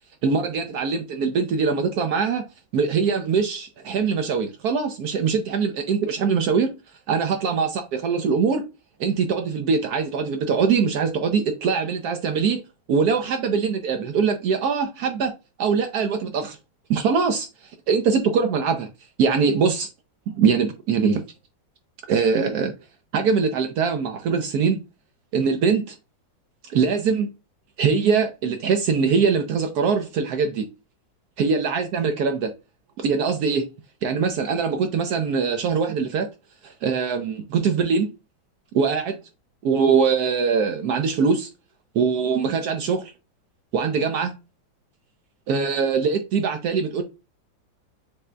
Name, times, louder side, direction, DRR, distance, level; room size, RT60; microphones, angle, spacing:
voice 1, 0.2-2.4 2.7-6.7 7.1-8.7 9.0-12.6 12.9-15.3 15.6-16.6 16.9-17.5 17.9-18.9 19.2-19.9 20.3-21.2 22.1-22.7 23.1-24.8 25.3-26.0 26.7-27.3 27.8-30.7 31.4-32.5 33.0-33.6 34.0-36.3 36.6-38.1 38.7-39.2 39.6-41.5 41.9-43.1 43.7-44.3 45.5-47.0, right 5 dB, 70° right, 0.9 m, -22 dB
7.4 x 2.8 x 2.2 m
omnidirectional pair, 2.1 m